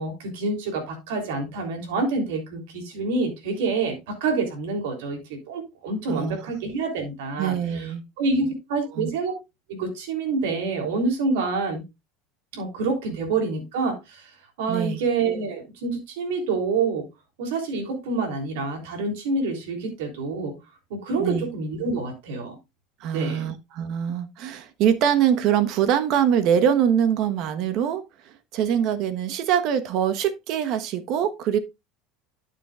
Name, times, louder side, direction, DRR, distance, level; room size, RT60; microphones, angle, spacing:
voice 1, 0.0-9.3 9.7-11.8 12.5-14.3 14.6-17.0 17.4-20.5 20.9-22.6 23.1-23.5, right 3 dB, 85° right, 3.4 m, -27 dB
voice 2, 7.4-8.0 8.9-9.1 14.7-15.0 21.2-21.5 23.0-31.6, right 9 dB, 55° right, 1.2 m, -23 dB
12.0 x 6.9 x 2.4 m
supercardioid pair, 130°, 0 cm